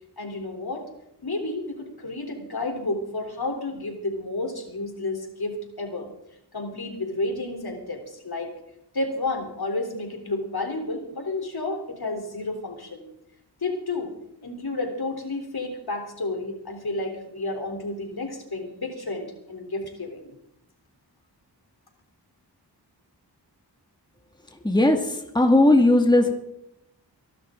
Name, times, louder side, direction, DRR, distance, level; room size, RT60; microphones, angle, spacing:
voice 1, 0.2-0.9 1.2-6.1 6.5-8.5 8.9-13.1 13.6-14.1 14.4-20.3, left 2 dB, 60° left, 3 dB, 3.7 m, -31 dB
voice 2, 24.6-26.3, left 1 dB, 10° left, 3 dB, 2.1 m, -18 dB
24.5 x 12.0 x 3.8 m, 0.80 s
wide cardioid pair, 55°, 42 cm